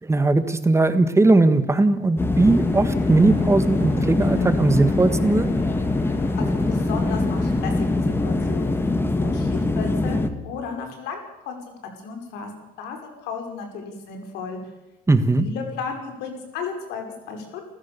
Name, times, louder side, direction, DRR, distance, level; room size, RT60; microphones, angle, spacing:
voice 1, 0.0-5.5 15.1-15.5, right 2 dB, 15° right, 11 dB, 1.5 m, -19 dB
sound 1, 2.2-10.3, left 2 dB, 15° left, 1.6 m, -23 dB
sound 2, 2.4-8.9, left 4 dB, 75° left, 4.9 m, -41 dB
voice 2, 6.4-11.8 12.0-14.7 15.4-17.7, left 5 dB, 90° left, 4 dB, 5.3 m, -34 dB
29.5 x 14.5 x 6.9 m, 0.99 s
cardioid pair, 110°, 17 cm